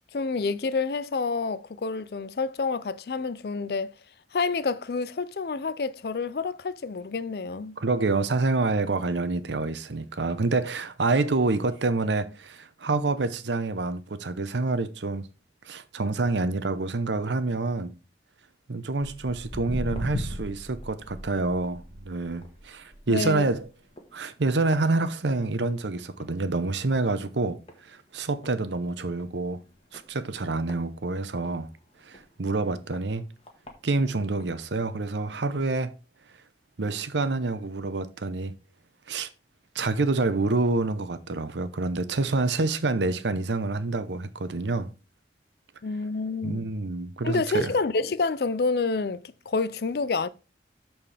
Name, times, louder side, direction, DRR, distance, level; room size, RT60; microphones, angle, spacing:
voice 1, 0.1-3.9 4.3-7.7 23.1-23.4 45.8-46.7 47.2-50.3, left 4 dB, 65° left, 0.5 m, -28 dB
voice 2, 7.8-15.3 15.7-17.9 18.7-23.7 24.1-27.6 27.9-29.6 29.9-31.7 32.0-33.2 33.8-35.9 36.8-38.5 39.1-39.3 39.7-44.9 46.4-47.7, right 3 dB, 90° right, 0.8 m, -27 dB
Walk footsteps, 19.0-25.7 26.0-26.3 26.9-27.0 27.7-27.8 28.2-28.3 28.4-28.5 29.1-29.3 29.9-31.5 32.1-32.2 32.9-33.0 33.4-33.7 34.4-34.5, equal, 35° left, 1.5 m, -38 dB
12.5 x 4.4 x 3.4 m
head